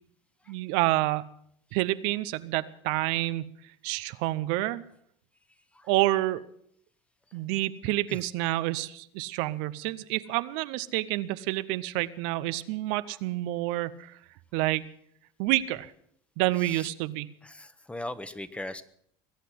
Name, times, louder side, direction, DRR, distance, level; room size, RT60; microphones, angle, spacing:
voice 1, 0.5-1.3 1.7-3.5 3.8-4.8 5.9-6.4 7.3-14.2 14.5-14.8 15.4-15.9 16.4-17.3, right 17 dB, 70° right, 14 dB, 0.7 m, -28 dB
voice 2, 17.4-18.8, left 1 dB, 10° left, 12 dB, 1.2 m, -38 dB
22.0 x 8.3 x 7.7 m, 0.67 s
supercardioid pair, 90°, 13 cm